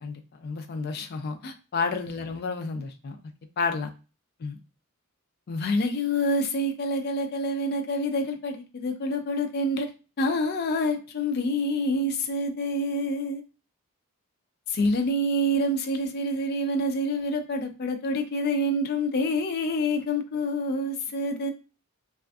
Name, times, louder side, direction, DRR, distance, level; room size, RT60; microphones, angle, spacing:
voice 1, 0.0-3.2 3.6-3.9 4.4-4.6 5.5-9.9 10.2-13.4 14.7-21.5, left 1 dB, 50° left, 6 dB, 0.4 m, -27 dB
2.4 x 2.4 x 2.3 m, 0.33 s
head